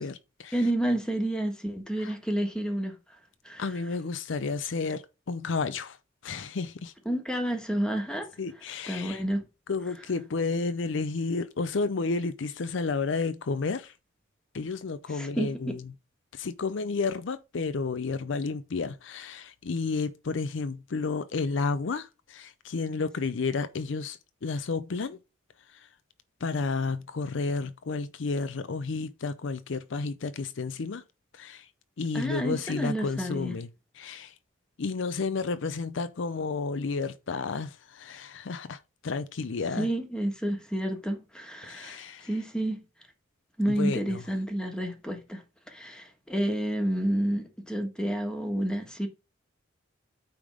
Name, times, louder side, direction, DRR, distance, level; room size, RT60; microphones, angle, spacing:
voice 1, 0.0-0.6 2.0-2.1 3.6-6.0 6.2-6.9 8.4-9.2 9.7-13.9 14.5-15.8 16.3-25.2 26.4-31.0 31.4-31.7 32.0-33.7 34.0-34.3 34.8-39.9 41.6-42.3 43.7-44.2, left 4 dB, 70° left, 0.6 m, -31 dB
voice 2, 0.5-3.0 3.4-3.6 7.0-8.3 8.9-9.4 15.1-15.7 32.1-33.5 39.7-42.8 43.6-45.4 45.7-49.1, right 1 dB, 5° left, 1.5 m, -30 dB
8.7 x 3.6 x 4.9 m
head